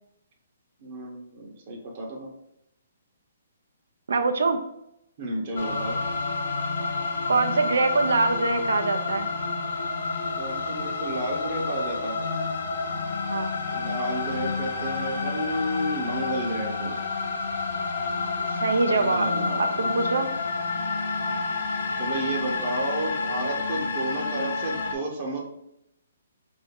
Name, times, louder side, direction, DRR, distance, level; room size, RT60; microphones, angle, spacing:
voice 1, 0.8-2.3 5.2-6.0 10.4-12.2 13.7-17.0 18.8-19.7 21.9-25.5, right 1 dB, 45° right, -1 dB, 0.9 m, -31 dB
voice 2, 4.1-4.6 7.3-9.3 13.3-13.5 18.6-19.3 19.6-20.3, right 3 dB, 80° right, 7 dB, 0.5 m, -24 dB
sound 1, 5.6-24.9, left 4 dB, 65° left, 0.7 m, -29 dB
3.6 x 2.6 x 3.6 m, 0.80 s
hypercardioid pair, 150°, 0 cm